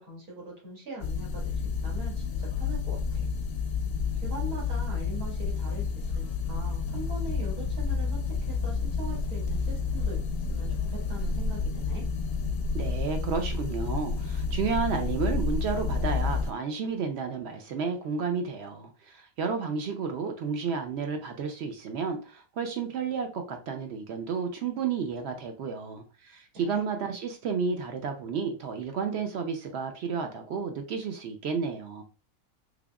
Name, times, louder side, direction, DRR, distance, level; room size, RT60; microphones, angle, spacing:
voice 1, 0.0-1.5 1.8-3.3 4.1-10.2 10.5-12.0 26.5-26.9, right 2 dB, 85° right, -4 dB, 2.1 m, -42 dB
sound 1, 1.0-16.5, left 4 dB, 60° left, 0.6 m, -30 dB
voice 2, 12.7-32.0, right 5 dB, 65° right, 6 dB, 0.6 m, -32 dB
3.5 x 3.4 x 2.3 m, 0.35 s
omnidirectional pair, 1.5 m